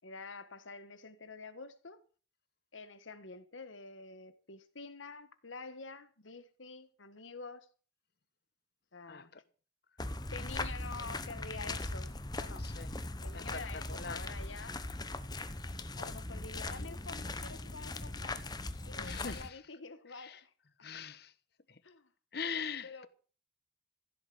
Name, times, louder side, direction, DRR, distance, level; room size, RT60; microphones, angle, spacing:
voice 1, 0.0-2.0 2.7-7.7 8.9-9.3 10.3-12.1 12.4-12.7 13.2-14.8 15.9-18.4 18.9-20.5 21.8-22.1 22.8-23.1, left 4 dB, 85° left, 1.6 m, -48 dB
sound 1, 10.0-19.5, left 2 dB, 20° left, 1.0 m, -40 dB
voice 2, 19.0-19.6 20.2-20.4 20.8-21.3 22.3-23.1, left 6 dB, 55° left, 1.0 m, -41 dB
15.5 x 8.2 x 7.8 m
head